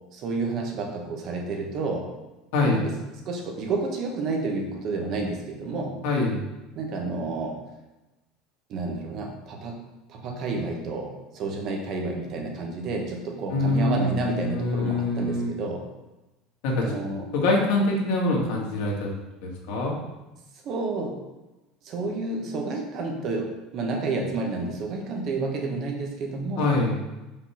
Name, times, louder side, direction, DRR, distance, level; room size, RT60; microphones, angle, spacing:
voice 1, 0.1-2.1 2.7-2.9 3.2-6.0 6.7-7.6 8.7-9.8 10.1-15.8 16.8-17.3 20.6-21.2 21.8-26.7, right 3 dB, 40° right, 2 dB, 1.2 m, -30 dB
voice 2, 6.0-6.4 13.5-15.5 16.6-16.8 17.3-19.1 19.4-19.9 26.6-27.0, left 2 dB, 65° left, -1 dB, 1.8 m, -24 dB
5.4 x 4.4 x 5.7 m, 1.0 s
cardioid pair, 170°, 0 cm